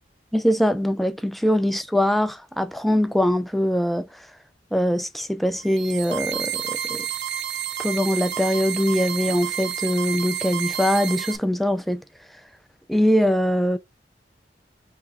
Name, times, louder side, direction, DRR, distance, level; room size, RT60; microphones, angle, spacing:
voice 1, 0.3-4.3 4.7-7.1 7.8-12.0 12.9-13.8, equal, ahead, 0.3 m, -22 dB
sound 1, 5.6-11.4, right 9 dB, 75° right, 0.5 m, -30 dB
4.9 x 2.9 x 2.3 m
head